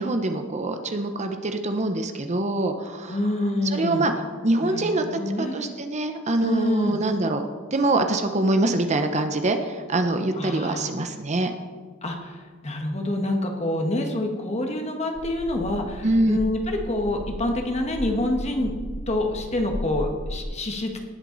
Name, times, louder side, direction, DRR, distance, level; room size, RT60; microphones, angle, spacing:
voice 1, 0.0-3.2 3.7-4.1 4.4-7.5 7.7-11.5 16.0-16.4, right 2 dB, 35° right, 6 dB, 0.8 m, -24 dB
voice 2, 3.1-4.0 4.6-5.7 6.4-7.0 10.3-10.9 12.0-18.7 19.1-21.0, left 1 dB, 30° left, 3 dB, 1.5 m, -27 dB
sound 1, 15.2-20.4, equal, 85° left, 0.8 m, -35 dB
18.5 x 8.0 x 4.0 m, 1.5 s
head